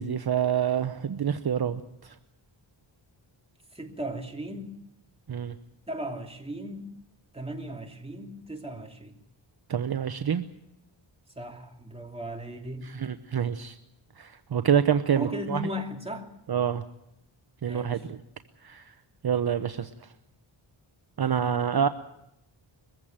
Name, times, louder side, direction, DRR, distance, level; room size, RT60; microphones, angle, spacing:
voice 1, 0.0-2.2 5.3-5.6 9.7-10.4 12.8-13.8 14.2-15.7 16.5-16.8 17.6-18.2 18.6-18.9 19.2-19.9 21.2-21.9, right 8 dB, 50° right, 9 dB, 0.9 m, -27 dB
voice 2, 3.7-4.8 5.9-6.8 7.3-9.1 11.4-12.9 15.1-16.3 17.6-18.0, right 1 dB, 10° right, 1 dB, 2.9 m, -36 dB
22.0 x 15.0 x 8.9 m, 0.82 s
wide cardioid pair, 125°, 47 cm